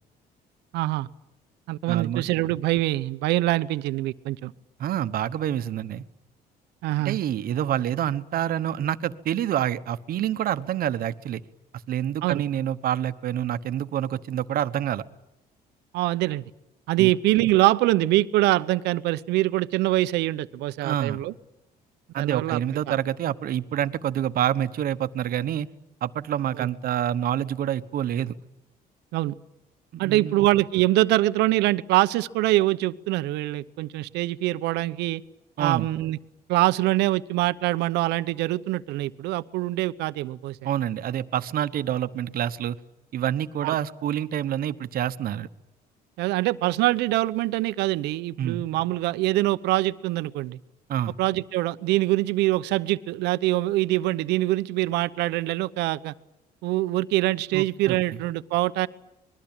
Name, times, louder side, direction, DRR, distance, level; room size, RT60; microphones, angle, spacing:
voice 1, 0.7-1.1 1.7-4.5 6.8-7.2 12.2-12.4 15.9-16.4 16.9-21.3 22.2-22.6 22.9-23.0 26.6-26.7 29.1-29.3 30.0-35.2 35.6-36.2 36.5-40.6 43.6-43.7 46.2-50.6 51.2-56.1 56.6-58.9, right 17 dB, 90° right, 13 dB, 0.9 m, -24 dB
voice 2, 1.9-2.2 4.8-6.0 7.0-11.4 11.9-15.0 17.0-17.1 20.8-21.2 22.1-25.7 26.0-28.3 29.9-30.4 35.6-35.9 40.6-42.8 43.1-45.5 48.4-48.7 50.9-51.1 57.5-58.2, right 11 dB, 60° right, 12 dB, 1.1 m, -27 dB
26.0 x 21.5 x 9.0 m, 0.89 s
cardioid pair, 110°, 17 cm